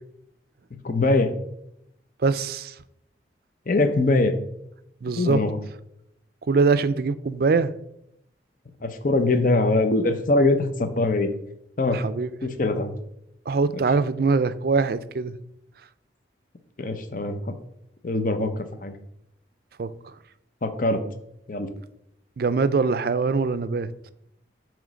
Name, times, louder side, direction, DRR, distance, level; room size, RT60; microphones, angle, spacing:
voice 1, 0.8-1.3 3.7-4.3 5.2-5.6 8.8-11.3 11.8-12.0 12.4-12.9 13.7-13.8 16.8-17.4 18.0-18.9 20.6-21.0 21.5-21.7, left 2 dB, 45° left, 0.7 m, -22 dB
voice 2, 2.2-2.7 5.0-5.4 6.5-7.7 11.9-12.4 13.5-15.3 19.8-19.9 22.4-23.9, right 4 dB, 55° right, 0.4 m, -23 dB
8.9 x 3.1 x 6.2 m
head